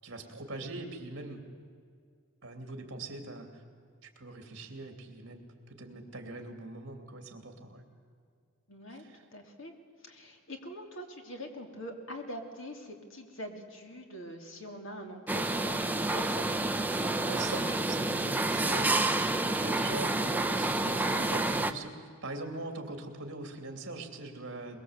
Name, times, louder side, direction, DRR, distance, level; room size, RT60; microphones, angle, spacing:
voice 1, 0.0-1.4 2.4-3.6 4.0-7.8 8.9-9.0 17.3-24.8, right 2 dB, 55° right, 4 dB, 2.9 m, -42 dB
voice 2, 8.7-9.0 9.3-9.7 10.0-16.7, equal, 60° left, 3 dB, 3.0 m, -44 dB
sound 1, 15.3-21.7, right 2 dB, 10° right, 0.7 m, -29 dB
23.0 x 22.0 x 8.1 m, 2.1 s
head